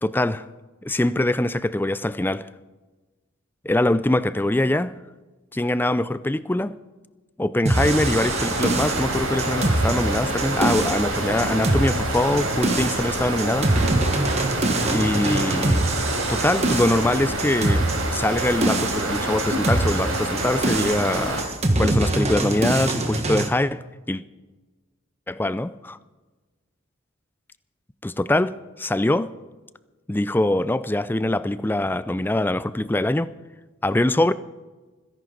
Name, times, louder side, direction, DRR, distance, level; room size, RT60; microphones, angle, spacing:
voice 1, 0.0-0.4 0.8-2.5 3.6-4.9 5.5-6.8 7.4-13.7 14.8-15.9 16.3-17.9 18.1-21.4 21.8-24.2 25.3-26.0 28.0-29.3 30.1-33.3 33.8-34.3, left 1 dB, 10° left, 0.4 m, -23 dB
sound 1, 7.6-23.5, right 2 dB, 30° right, 1.5 m, -24 dB
sound 2, 7.7-21.4, right 2 dB, 80° right, 4.1 m, -27 dB
25.5 x 11.0 x 4.0 m
head